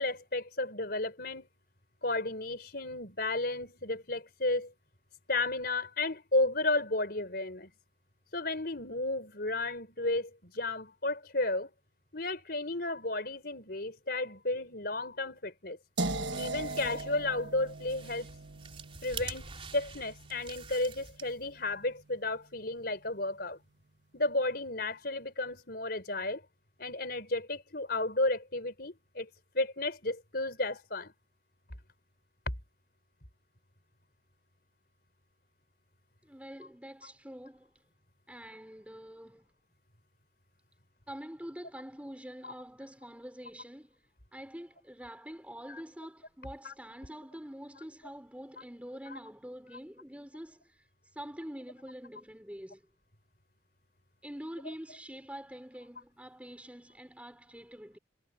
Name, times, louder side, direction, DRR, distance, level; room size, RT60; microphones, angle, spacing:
voice 1, 0.0-1.5 2.0-4.7 5.3-7.7 8.3-11.7 12.1-15.8 16.4-18.3 19.0-23.6 24.1-26.4 26.8-29.3 29.5-31.1 42.4-42.5 46.6-46.7, left 2 dB, 55° left, 4.7 m, -33 dB
sound 1, 16.0-21.9, right 2 dB, 65° right, 1.3 m, -40 dB
sound 2, 16.3-21.6, right 5 dB, 30° right, 3.9 m, -47 dB
voice 2, 36.2-37.7 38.3-39.4 41.1-44.0 44.3-50.8 51.1-52.8 54.2-58.0, equal, 5° right, 4.4 m, -46 dB
head